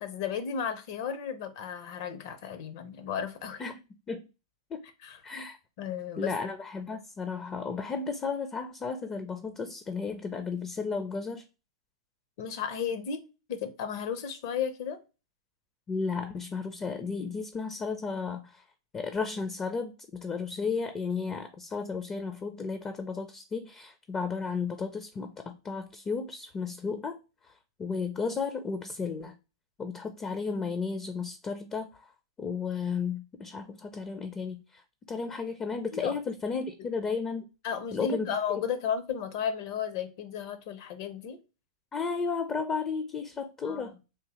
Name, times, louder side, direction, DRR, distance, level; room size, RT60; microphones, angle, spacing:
voice 1, 0.0-3.6 5.0-5.2 5.8-6.3 12.4-13.2 13.5-15.0 35.9-36.2 36.5-36.7 37.6-41.4 43.6-43.9, left 7 dB, 55° left, 0.7 m, -34 dB
voice 2, 5.2-5.6 6.2-11.4 15.9-18.6 18.9-27.2 27.4-27.5 27.8-29.3 29.8-32.1 32.4-34.8 35.1-37.5 37.9-38.4 41.9-44.0, left 5 dB, 20° left, 0.5 m, -33 dB
3.6 x 2.7 x 2.9 m
hypercardioid pair, 110°, 3 cm